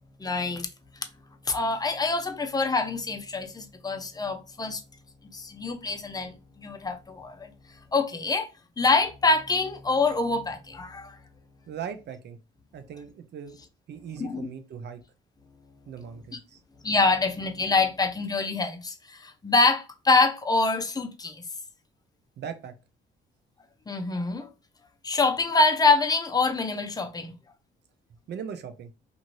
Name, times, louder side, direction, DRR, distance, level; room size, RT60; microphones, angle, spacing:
voice 1, 0.2-0.7 1.5-4.8 5.3-7.5 7.9-8.5 8.8-11.2 14.2-14.4 16.8-21.4 23.9-24.5 25.0-27.3, left 3 dB, 20° left, 0.6 m, -25 dB
voice 2, 11.7-12.4 12.7-13.5 13.9-15.0 15.9-16.6 22.4-22.7 28.3-28.9, right 7 dB, 60° right, 0.6 m, -39 dB
2.6 x 2.6 x 3.0 m
cardioid pair, 90°, 20 cm